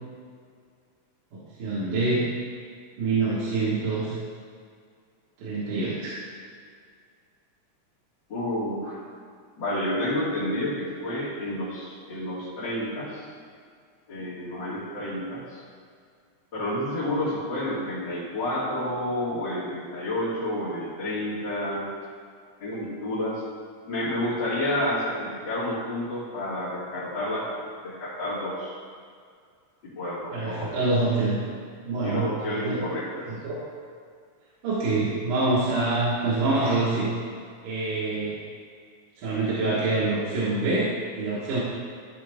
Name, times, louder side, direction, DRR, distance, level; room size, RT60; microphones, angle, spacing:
voice 1, 1.3-2.3 3.0-4.1 5.4-6.2 30.3-31.4 31.8-32.8 33.1-33.6 34.6-37.1 37.6-38.4 39.2-41.6, right 3 dB, 75° right, -10 dB, 3.0 m, -26 dB
voice 2, 8.3-9.0 9.6-13.2 14.1-15.6 16.5-21.9 22.6-23.4 23.9-28.7 30.0-30.7 32.0-33.3, left 1 dB, 40° left, -12 dB, 2.8 m, -30 dB
13.5 x 4.6 x 3.6 m, 2.1 s
omnidirectional pair, 3.6 m